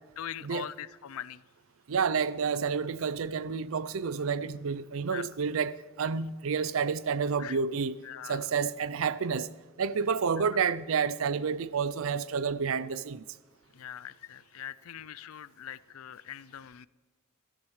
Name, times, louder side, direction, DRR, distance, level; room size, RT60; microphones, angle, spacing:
voice 1, 0.2-1.4 5.1-5.3 7.4-7.6 8.0-8.5 10.4-10.5 13.7-16.9, left 10 dB, 85° left, 0.4 m, -42 dB
voice 2, 1.9-8.0 8.3-9.5 9.8-13.2, right 6 dB, 75° right, 0.5 m, -29 dB
21.5 x 13.5 x 3.2 m
head